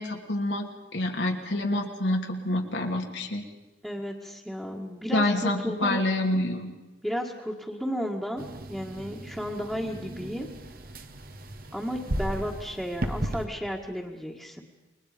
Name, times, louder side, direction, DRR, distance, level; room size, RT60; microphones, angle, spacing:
voice 1, 0.0-3.4 5.1-6.7, left 1 dB, 90° left, 1 dB, 2.9 m, -27 dB
voice 2, 3.8-6.0 7.0-10.5 11.7-14.6, equal, 5° right, -3 dB, 1.9 m, -33 dB
sound 1, 8.4-13.5, right 1 dB, 55° right, 1.6 m, -35 dB
29.0 x 22.5 x 5.3 m, 1.1 s
head